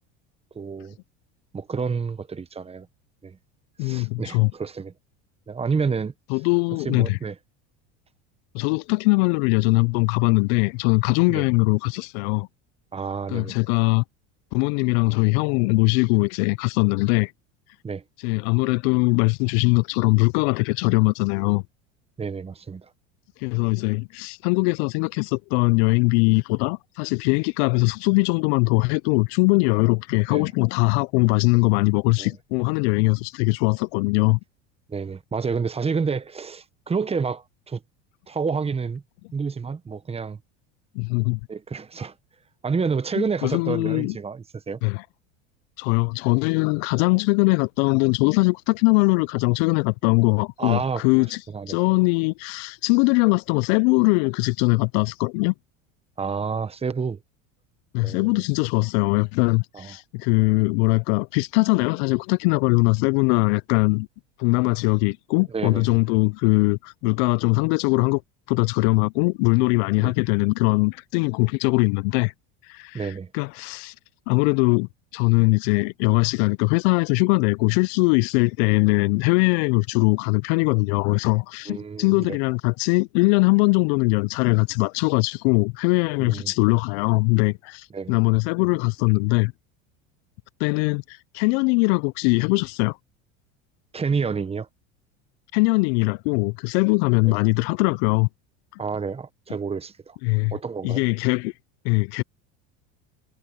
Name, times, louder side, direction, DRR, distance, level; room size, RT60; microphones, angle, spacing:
voice 1, 0.5-1.0 1.5-2.9 3.2-3.4 3.8-4.9 5.5-6.1 6.8-7.3 11.3-11.4 12.9-13.6 17.8-18.0 22.2-22.9 30.3-30.5 32.2-32.3 34.9-37.8 38.3-39.0 39.3-40.4 41.5-42.1 42.6-44.8 50.6-51.8 56.2-57.2 58.0-58.3 59.7-59.9 65.5-66.0 70.0-70.1 72.9-73.3 81.7-82.4 86.2-86.5 87.9-88.2 93.9-94.7 98.8-100.2 100.5-101.0, right 5 dB, 15° right, 1.1 m, -29 dB
voice 2, 3.8-4.5 6.3-7.2 8.5-12.5 13.3-14.0 14.5-17.3 18.2-21.6 23.4-34.4 40.9-41.4 43.2-44.2 44.8-45.0 45.8-51.4 51.7-55.5 57.9-64.1 64.4-68.2 68.5-72.3 72.7-73.9 74.3-89.5 90.6-93.0 95.5-98.3 100.2-100.5 100.8-101.5 101.8-102.2, left 29 dB, 65° left, 0.5 m, -21 dB
supercardioid pair, 110°, 34 cm